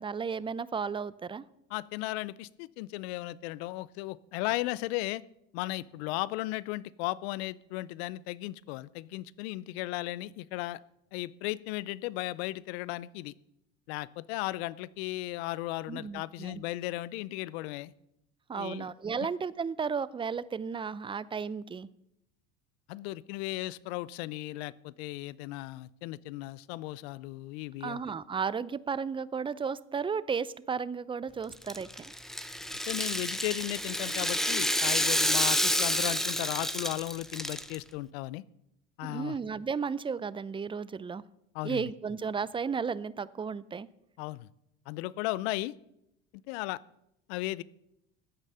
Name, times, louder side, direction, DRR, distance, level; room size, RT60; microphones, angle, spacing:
voice 1, 0.0-1.4 15.9-16.6 18.5-21.9 27.8-31.9 39.0-41.2 41.6-43.9, right 6 dB, 15° right, 19 dB, 0.5 m, -34 dB
voice 2, 1.7-5.2 5.5-10.8 11.1-13.3 13.9-17.9 18.5-18.9 22.9-28.0 32.9-38.4 39.0-39.4 41.5-41.9 44.2-44.5 44.9-45.7 46.5-46.8 47.3-47.6, left 18 dB, 75° left, 20 dB, 0.6 m, -36 dB
Rattle (instrument), 31.5-37.7, equal, ahead, 0.9 m, -29 dB
15.0 x 9.8 x 5.6 m, 0.81 s
hypercardioid pair, 85°, 31 cm